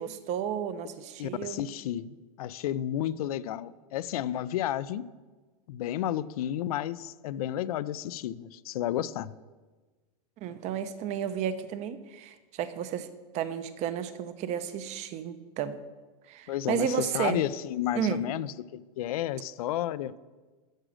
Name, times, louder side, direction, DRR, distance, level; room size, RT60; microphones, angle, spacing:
voice 1, 0.0-1.6 10.4-13.1 13.3-15.7 16.3-17.4 18.0-18.2, right 9 dB, 35° right, 12 dB, 0.8 m, -32 dB
voice 2, 1.2-5.1 5.7-9.3 16.5-20.2, left 11 dB, 70° left, 16 dB, 0.5 m, -32 dB
13.0 x 4.9 x 6.3 m, 1.3 s
hypercardioid pair, 125°, 20 cm